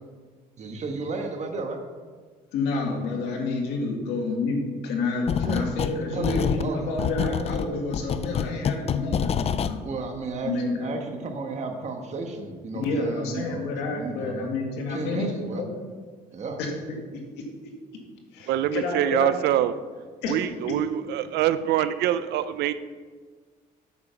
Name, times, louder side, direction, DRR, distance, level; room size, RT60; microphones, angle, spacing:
voice 1, 0.6-1.8 5.4-5.6 6.1-6.9 9.8-13.6 13.9-14.6 14.9-15.7 16.3-16.6, right 3 dB, 45° right, 4 dB, 1.4 m, -33 dB
voice 2, 2.5-9.8 10.4-10.9 12.7-15.7 16.6-17.5 18.3-19.3 20.2-20.4, left 3 dB, 90° left, 1 dB, 2.0 m, -29 dB
sound 1, 5.3-6.0 6.2-9.8, left 8 dB, 35° left, 0.4 m, -27 dB
voice 3, 18.5-19.7 20.3-22.7, right 12 dB, 80° right, 13 dB, 0.5 m, -24 dB
8.5 x 6.9 x 5.8 m, 1.5 s
cardioid pair, 110°, 17 cm